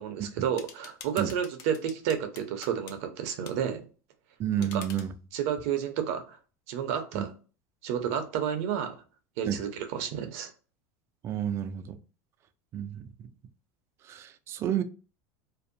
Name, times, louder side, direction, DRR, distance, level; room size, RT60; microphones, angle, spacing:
voice 1, 0.0-3.8 4.6-4.8 5.3-6.4 6.7-7.3 7.8-9.0 9.4-10.5, right 8 dB, 70° right, 0.6 m, -31 dB
sound 1, 0.6-3.0 3.5-3.6 4.6-5.1, left 7 dB, 50° left, 0.5 m, -47 dB
voice 2, 4.4-5.1 7.1-7.3 9.5-9.6 11.2-12.0 12.7-13.3 14.0-14.8, right 10 dB, 35° right, 0.3 m, -30 dB
2.6 x 2.1 x 2.5 m
supercardioid pair, 140°, 8 cm